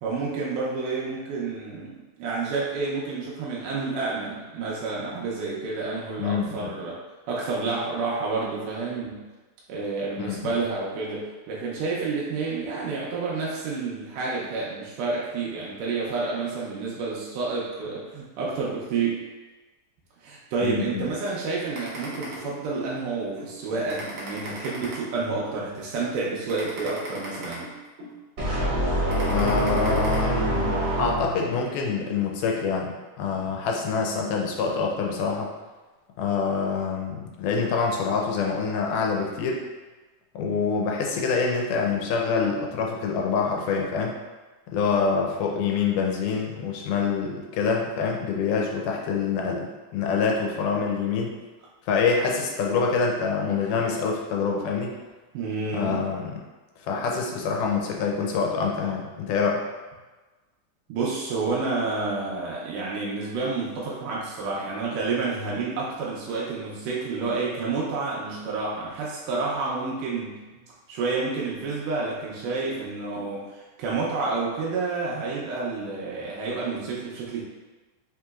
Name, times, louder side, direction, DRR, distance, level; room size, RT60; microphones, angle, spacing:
voice 1, 0.0-7.0 7.3-9.2 9.7-19.2 20.2-27.7 33.5-33.6 40.4-40.6 55.3-56.1 60.9-70.4 70.9-77.4, right 4 dB, 85° right, -5 dB, 2.2 m, -29 dB
voice 2, 6.2-6.7 10.2-10.4 20.6-21.1 29.3-35.5 36.2-39.6 40.4-44.2 44.7-51.3 51.9-54.9 55.7-56.3 56.8-59.6, left 5 dB, 80° left, 0 dB, 2.1 m, -26 dB
sound 1, 21.8-22.9 23.4-23.5 23.9-25.5 26.0-26.1 26.5-28.1 28.6-28.7 29.1-30.2, right 1 dB, 70° right, 1.4 m, -38 dB
sound 2, 28.4-31.6, equal, 50° right, 1.2 m, -25 dB
5.2 x 2.9 x 2.3 m, 1.2 s
omnidirectional pair, 3.7 m